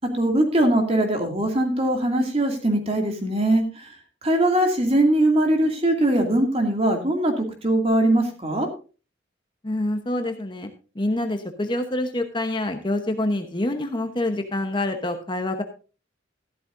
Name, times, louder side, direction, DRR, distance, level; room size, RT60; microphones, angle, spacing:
voice 1, 0.1-3.9 4.2-8.7, right 1 dB, 30° right, 3 dB, 2.4 m, -21 dB
voice 2, 9.6-15.6, left 1 dB, 25° left, 6 dB, 1.0 m, -26 dB
14.0 x 12.0 x 2.6 m, 0.34 s
head